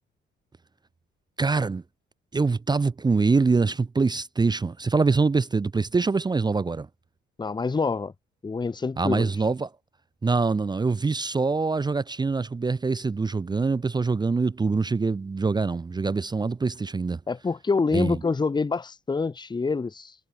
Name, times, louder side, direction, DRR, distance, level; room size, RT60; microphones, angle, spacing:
voice 1, 1.4-1.8 2.3-6.9 9.0-9.7 10.2-17.2 17.9-18.2, right 4 dB, 20° right, 0.7 m, -24 dB
voice 2, 7.4-8.1 8.4-9.3 17.3-20.1, left 4 dB, 20° left, 1.0 m, -26 dB
cardioid pair, 90°, 20 cm